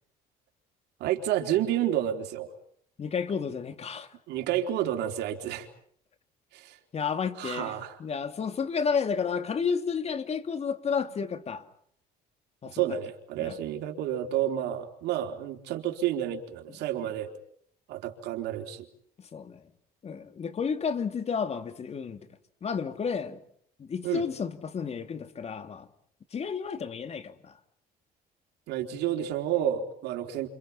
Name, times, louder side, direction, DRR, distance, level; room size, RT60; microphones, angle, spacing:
voice 1, 1.0-2.5 4.3-5.7 6.5-6.8 7.4-8.0 12.7-17.3 17.9-18.9 24.0-24.2 28.7-30.5, right 11 dB, 80° right, 4.0 m, -30 dB
voice 2, 3.0-4.1 6.9-11.6 12.6-12.8 13.4-13.6 19.3-19.7 20.0-22.3 22.6-23.4 23.8-25.9 26.3-27.6, left 6 dB, 40° left, 2.8 m, -31 dB
29.0 x 28.0 x 5.8 m
cardioid pair, 110°, 17 cm